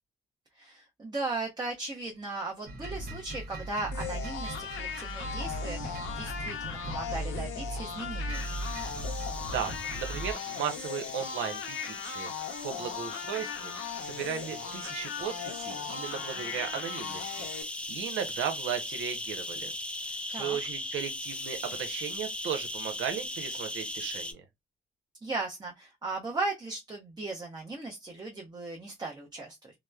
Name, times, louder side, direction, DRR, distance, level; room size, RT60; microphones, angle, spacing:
voice 1, 0.6-8.5 20.3-20.6 25.2-29.7, right 3 dB, 20° right, 0.8 m, -37 dB
sound 1, 2.7-10.3, right 1 dB, 50° right, 0.9 m, -38 dB
sound 2, 3.9-17.6, left 7 dB, 85° left, 0.7 m, -38 dB
sound 3, 8.3-24.3, left 1 dB, 5° left, 0.4 m, -39 dB
voice 2, 9.4-13.7 14.0-17.5 17.9-19.7 20.3-24.4, right 8 dB, 80° right, 0.8 m, -36 dB
2.9 x 2.1 x 2.3 m
cardioid pair, 90°, 20 cm